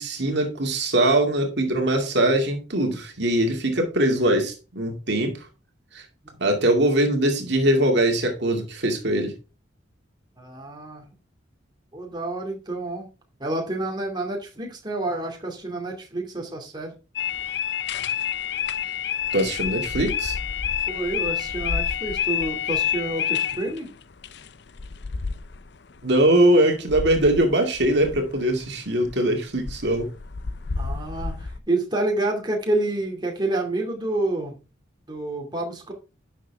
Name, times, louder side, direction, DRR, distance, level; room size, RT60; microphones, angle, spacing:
voice 1, 0.0-5.5 5.9-6.0 6.4-9.3 19.3-20.4 26.0-30.1, right 1 dB, 60° right, 3 dB, 2.3 m, -21 dB
voice 2, 10.4-11.1 11.9-13.1 13.4-16.9 20.9-23.9 30.8-34.6 35.1-35.9, right 2 dB, 20° right, 1 dB, 2.4 m, -28 dB
sound 1, 17.2-26.3 26.9-28.7 29.0-29.2 29.6-31.6, left 8 dB, 60° left, 0.6 m, -29 dB
11.5 x 6.7 x 3.4 m, 0.32 s
head